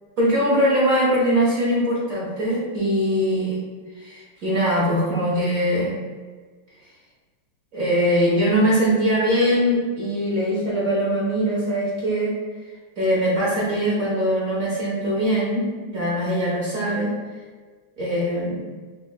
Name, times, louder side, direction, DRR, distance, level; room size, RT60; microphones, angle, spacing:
voice 1, 0.2-3.6 4.0-6.0 7.7-12.3 13.0-15.6 15.9-17.1 18.0-18.6, equal, 65° right, -6 dB, 0.8 m, -21 dB
5.5 x 2.2 x 2.3 m, 1.4 s
omnidirectional pair, 2.3 m